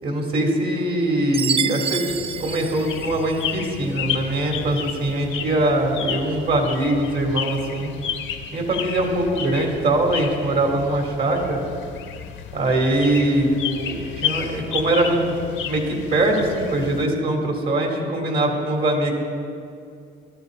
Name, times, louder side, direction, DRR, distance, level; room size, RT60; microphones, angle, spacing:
voice 1, 0.0-2.0 2.4-7.9 8.5-11.6 12.5-15.2 15.7-19.1, right 1 dB, 55° right, 1 dB, 3.6 m, -22 dB
Chime, 1.3-3.7, right 6 dB, 30° right, 0.4 m, -28 dB
sound 1, 2.1-17.0, left 8 dB, 80° left, 1.0 m, -32 dB
19.0 x 13.0 x 4.2 m, 2.4 s
cardioid pair, 90°, 20 cm